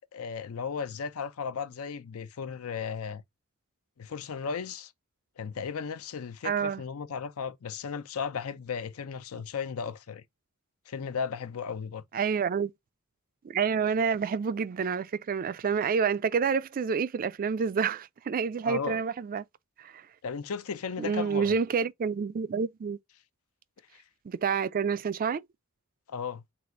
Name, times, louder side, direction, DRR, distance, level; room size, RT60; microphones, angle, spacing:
voice 1, 0.0-3.2 4.0-4.9 5.4-10.2 10.9-12.0 18.6-19.0 20.2-21.6 23.9-24.0 26.1-26.4, left 6 dB, 70° left, 0.5 m, -35 dB
voice 2, 6.4-6.8 12.1-12.7 13.4-19.4 19.8-20.0 21.0-23.0 24.3-25.4, right 6 dB, 40° right, 0.3 m, -28 dB
4.2 x 2.4 x 4.3 m
head